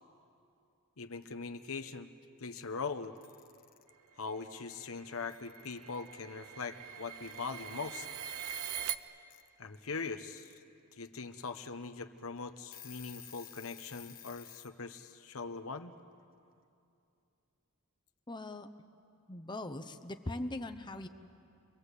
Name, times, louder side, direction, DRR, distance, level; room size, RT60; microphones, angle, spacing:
voice 1, 1.0-2.1 2.4-3.1 4.2-8.1 9.6-10.6 11.0-15.9, left 4 dB, 65° left, 8 dB, 1.1 m, -41 dB
Alarm / Clock, 3.0-3.8 5.0-5.1 5.3-6.1 7.2-7.9 9.3-9.4 10.1-10.6 11.0-11.1 11.5-11.7 12.2-12.3 12.6-14.7, left 11 dB, 40° left, 1.1 m, -53 dB
sound 1, 4.2-9.0, right 9 dB, 85° right, 0.9 m, -43 dB
voice 2, 18.3-18.7 19.3-21.1, left 1 dB, 20° left, 8 dB, 0.8 m, -40 dB
28.5 x 22.5 x 8.3 m, 2.6 s
head